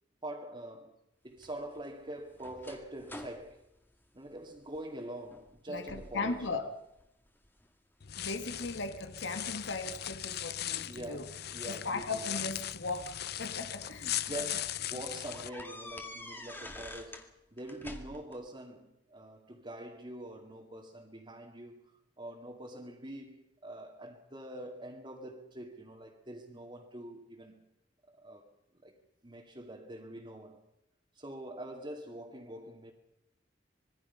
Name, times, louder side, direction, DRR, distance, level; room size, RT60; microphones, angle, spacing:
voice 1, 0.2-0.9 1.2-3.6 4.1-6.5 8.6-8.7 10.7-12.2 14.2-27.5 28.1-28.5 28.8-29.0 29.2-30.6 31.1-32.9, right 1 dB, 25° right, 2.3 m, -45 dB
sound 1, 1.4-4.8 5.2-5.6 5.9-6.6 7.0-7.7 8.3-9.8 10.9-11.0 12.2-13.7 14.2-14.3 14.6-14.7 15.3-17.3 17.6-18.4, left 1 dB, 10° left, 2.0 m, -48 dB
voice 2, 5.7-6.7 8.2-11.3 11.7-14.4, left 3 dB, 80° left, 1.8 m, -38 dB
sound 2, 8.0-15.5, left 12 dB, 60° left, 0.7 m, -39 dB
26.0 x 21.5 x 5.7 m
head